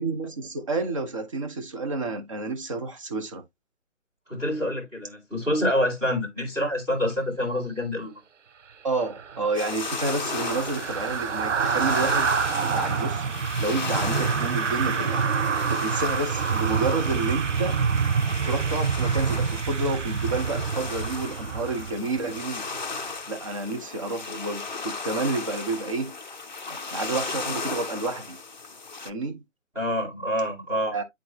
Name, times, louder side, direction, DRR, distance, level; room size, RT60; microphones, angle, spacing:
voice 1, 0.0-3.4 8.8-13.3 13.6-15.2 15.7-17.8 18.4-22.7 23.3-26.1 26.9-28.4 29.0-29.4 30.9-31.0, right 3 dB, 25° right, 1.1 m, -30 dB
voice 2, 4.3-8.1 29.7-30.9, left 1 dB, 5° right, 2.5 m, -27 dB
sound 1, 9.1-22.4 22.8-23.0, right 6 dB, 70° right, 0.7 m, -27 dB
sound 2, 9.5-29.1, left 4 dB, 35° left, 0.6 m, -36 dB
11.0 x 3.7 x 2.9 m
figure-of-eight pair, 160°, 38 cm